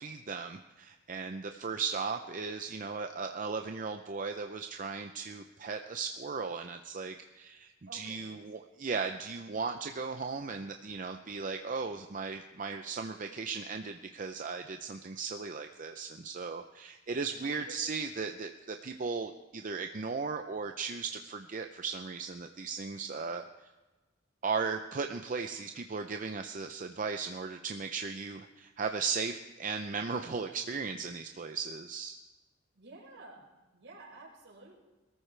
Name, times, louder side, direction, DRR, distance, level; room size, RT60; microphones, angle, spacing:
voice 1, 0.0-23.4 24.4-32.2, right 5 dB, 45° right, 6 dB, 0.6 m, -37 dB
voice 2, 7.9-8.4 17.4-17.8 32.7-34.7, right 2 dB, 70° right, -3 dB, 5.2 m, -52 dB
22.0 x 14.0 x 3.3 m, 1.1 s
head